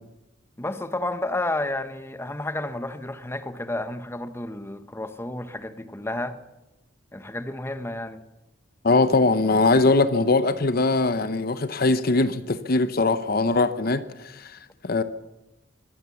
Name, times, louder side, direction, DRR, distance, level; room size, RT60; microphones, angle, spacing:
voice 1, 0.6-6.4 7.1-8.2, left 1 dB, 15° left, 1.1 m, -31 dB
voice 2, 8.8-15.0, left 3 dB, 50° left, 0.9 m, -21 dB
24.0 x 16.0 x 7.1 m
head